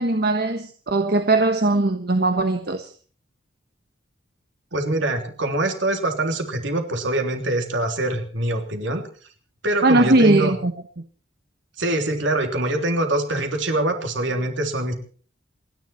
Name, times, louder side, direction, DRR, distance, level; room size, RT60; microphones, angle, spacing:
voice 1, 0.0-2.9 9.8-10.7, right 2 dB, 50° right, 7 dB, 1.2 m, -19 dB
voice 2, 4.7-9.1 9.6-10.6 11.8-14.9, right 2 dB, 65° right, 4 dB, 3.3 m, -24 dB
28.5 x 10.5 x 4.4 m, 0.42 s
head